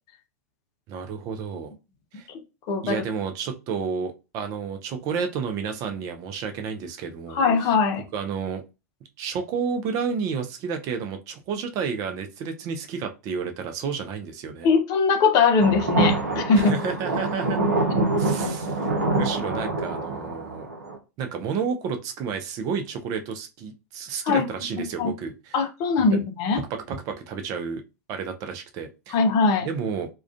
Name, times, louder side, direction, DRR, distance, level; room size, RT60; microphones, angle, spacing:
voice 1, 0.9-1.7 2.1-2.3 2.8-7.4 8.1-8.6 9.2-14.7 16.5-17.6 18.1-18.9 19.2-20.7 21.2-25.5 26.1-26.2 26.5-27.8 28.1-29.2 29.6-30.1, right 6 dB, 45° right, 6 dB, 0.4 m, -31 dB
voice 2, 2.7-3.0 7.3-8.0 14.6-16.7 24.3-24.5 25.0-25.1 25.5-26.6 29.1-29.7, left 4 dB, 45° left, 6 dB, 0.6 m, -21 dB
sound 1, 15.6-21.0, right 2 dB, 85° right, 0.6 m, -25 dB
2.3 x 2.2 x 2.4 m, 0.29 s
hypercardioid pair, 95°, 9 cm